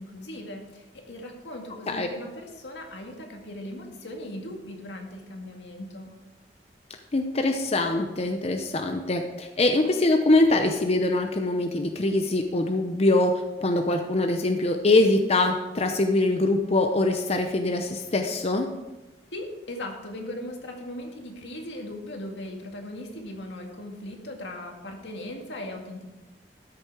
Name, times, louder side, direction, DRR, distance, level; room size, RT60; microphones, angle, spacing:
voice 1, 0.0-6.1 19.3-26.1, left 1 dB, 85° left, 2 dB, 2.0 m, -38 dB
voice 2, 7.1-18.7, left 2 dB, 35° left, 5 dB, 0.7 m, -23 dB
13.0 x 6.6 x 4.8 m, 1.1 s
head